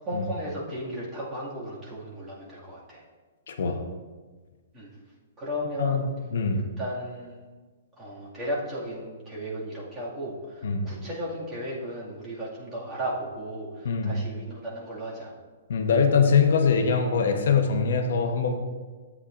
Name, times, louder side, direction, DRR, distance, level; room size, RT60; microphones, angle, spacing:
voice 1, 0.0-3.0 4.7-4.9 5.4-6.0 6.5-7.4 8.0-15.3, equal, 15° right, -6 dB, 2.1 m, -35 dB
voice 2, 3.5-3.8 5.8-6.7 10.6-10.9 13.8-14.2 15.7-18.5, left 5 dB, 70° left, 5 dB, 1.0 m, -23 dB
13.0 x 8.2 x 2.6 m, 1.4 s
hypercardioid pair, 170°, 0 cm